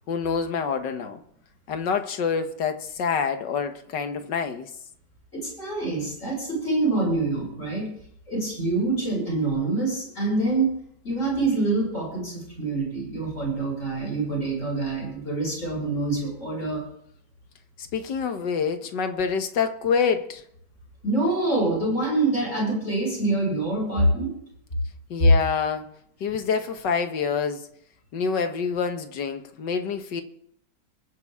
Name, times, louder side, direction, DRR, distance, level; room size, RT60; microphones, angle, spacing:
voice 1, 0.1-1.2 1.7-4.7 17.9-20.4 25.1-25.9 26.2-27.7 28.1-30.2, left 6 dB, 90° left, 1.9 m, -26 dB
voice 2, 5.3-7.9 8.3-10.7 11.0-16.8 21.0-24.3, right 2 dB, 45° left, 7.7 m, -25 dB
22.5 x 9.7 x 3.6 m
omnidirectional pair, 1.8 m